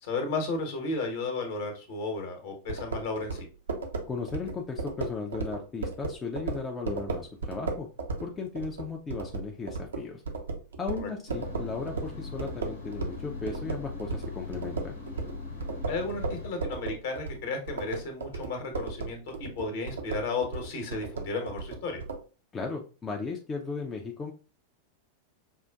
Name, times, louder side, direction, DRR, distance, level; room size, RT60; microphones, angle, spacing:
voice 1, 0.0-3.5 10.9-11.1 15.9-22.0, left 3 dB, 55° left, 4 dB, 1.1 m, -33 dB
sound 1, 2.7-13.2 13.5-22.2, right 3 dB, 70° right, 0.6 m, -35 dB
voice 2, 4.1-7.9 8.2-10.2 10.8-14.9 22.5-24.3, left 4 dB, 20° left, 1 dB, 0.5 m, -36 dB
sound 2, 11.3-16.5, left 3 dB, 75° left, 1.0 m, -40 dB
5.4 x 2.4 x 2.3 m, 0.36 s
figure-of-eight pair, 90°, 0 cm